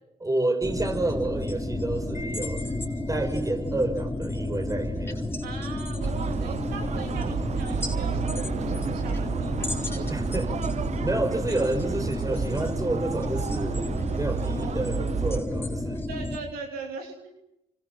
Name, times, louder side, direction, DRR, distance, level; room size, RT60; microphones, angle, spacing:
voice 1, 0.2-2.7 3.1-5.3 10.1-10.5 11.0-16.0, right 2 dB, 20° right, 5.8 m, -29 dB
sound 1, 0.6-16.4, left 1 dB, 15° left, 4.2 m, -31 dB
Wind chime, 2.1-3.5, left 2 dB, 55° left, 4.0 m, -44 dB
voice 2, 5.4-10.5 11.5-11.6 16.1-17.3, right 4 dB, 75° right, 3.2 m, -41 dB
sound 2, 6.0-15.4, right 7 dB, 50° right, 0.8 m, -32 dB
29.5 x 25.5 x 6.0 m
hypercardioid pair, 45°, 15 cm